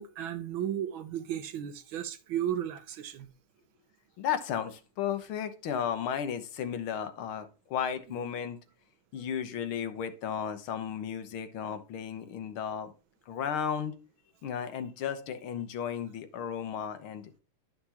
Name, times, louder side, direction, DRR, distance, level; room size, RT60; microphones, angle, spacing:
voice 1, 0.0-3.3, right 10 dB, 70° right, 1.4 m, -34 dB
voice 2, 4.2-8.6 9.1-12.9 13.3-13.9 14.4-17.4, left 8 dB, 75° left, 1.8 m, -34 dB
11.0 x 5.9 x 2.9 m
omnidirectional pair, 2.4 m